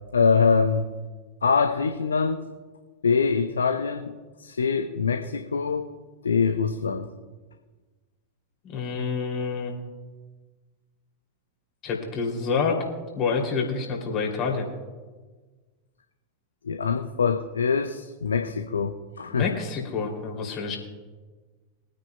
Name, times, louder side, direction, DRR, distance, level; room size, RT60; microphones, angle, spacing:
voice 1, 0.1-0.9 1.4-2.4 3.0-5.9 6.2-7.1 16.6-19.5, left 5 dB, 70° left, 6 dB, 0.6 m, -24 dB
voice 2, 8.6-9.7 11.8-12.8 13.2-14.7 19.3-20.8, left 5 dB, 35° left, 1 dB, 2.8 m, -27 dB
23.0 x 9.3 x 2.3 m, 1.3 s
figure-of-eight pair, 90°, 0 cm